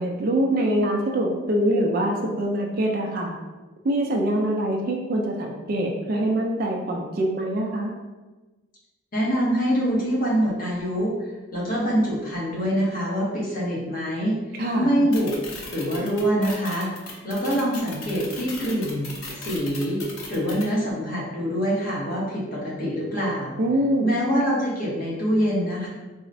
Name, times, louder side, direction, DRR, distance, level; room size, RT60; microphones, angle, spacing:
voice 1, 0.0-3.3 3.8-7.9 14.5-14.9 23.6-24.1, right 1 dB, 45° right, 1 dB, 0.3 m, -24 dB
voice 2, 9.1-11.2 11.5-14.4 14.8-15.3 15.7-16.9 17.2-20.0 20.3-23.6 24.0-25.9, equal, 40° left, -6 dB, 0.9 m, -24 dB
sound 1, 15.1-20.6, left 3 dB, 80° left, 0.7 m, -37 dB
3.9 x 2.0 x 2.6 m, 1.2 s
head